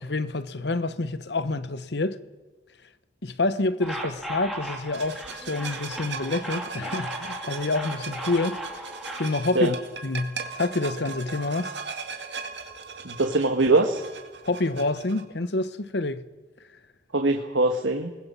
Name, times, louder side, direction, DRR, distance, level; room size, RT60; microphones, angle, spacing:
voice 1, 0.0-2.2 3.2-8.6 9.2-9.8 10.0-11.7 14.4-16.2, left 2 dB, 60° left, 1.0 m, -27 dB
sound 1, 3.8-9.3, right 1 dB, ahead, 3.1 m, -37 dB
sound 2, 4.9-15.2, right 5 dB, 70° right, 2.2 m, -38 dB
voice 2, 13.0-14.0 17.1-18.1, right 2 dB, 90° right, 1.4 m, -22 dB
29.0 x 20.5 x 5.6 m
head